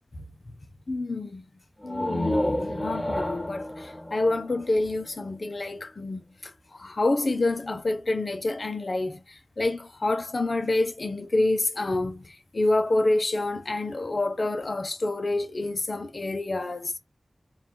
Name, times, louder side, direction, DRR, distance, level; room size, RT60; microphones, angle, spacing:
voice 1, 0.9-1.4 1.8-16.9, left 2 dB, 60° left, 1.0 m, -28 dB
sound 1, 1.8-5.4, left 1 dB, 10° left, 1.7 m, -30 dB
4.3 x 2.8 x 3.8 m
wide cardioid pair, 50°, 0 cm